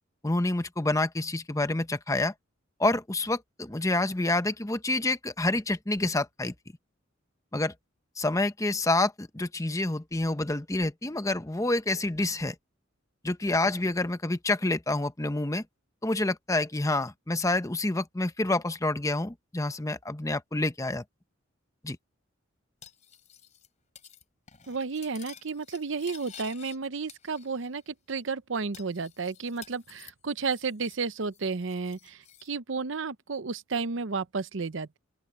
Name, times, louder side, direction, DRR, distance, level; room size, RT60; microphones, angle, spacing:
voice 1, 0.2-2.3 2.8-6.5 7.5-7.7 8.2-12.5 13.2-15.6 16.0-21.0 21.8-22.0, left 2 dB, 15° left, 0.8 m, -28 dB
Cutlery silverware, 22.8-23.7 24.0-24.2 24.5-26.8 27.1-27.8 28.1-28.2 28.7-31.1 31.3-32.5, left 8 dB, 35° left, 3.1 m, -51 dB
voice 2, 24.7-35.0, right 4 dB, 65° right, 0.7 m, -32 dB
open air
head